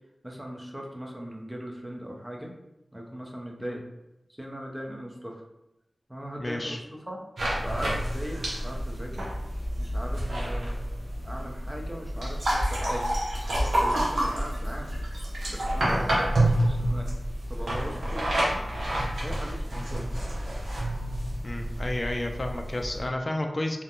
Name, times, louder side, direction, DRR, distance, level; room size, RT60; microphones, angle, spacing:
voice 1, 0.2-2.5 2.9-3.8 4.3-5.4 6.1-7.2 7.5-9.3 9.8-10.8 11.2-13.1 13.5-14.9 15.5-17.1 17.5-18.6 19.2-20.1, equal, 15° right, 0 dB, 0.6 m, -39 dB
voice 2, 6.4-6.8 10.3-10.5 15.8-16.0 19.7-19.9 21.4-23.8, left 1 dB, 40° left, 3 dB, 0.3 m, -32 dB
sound 1, 7.4-23.1, right 1 dB, 85° right, 0.6 m, -29 dB
2.4 x 2.1 x 2.9 m, 0.91 s
cardioid pair, 40°, 0 cm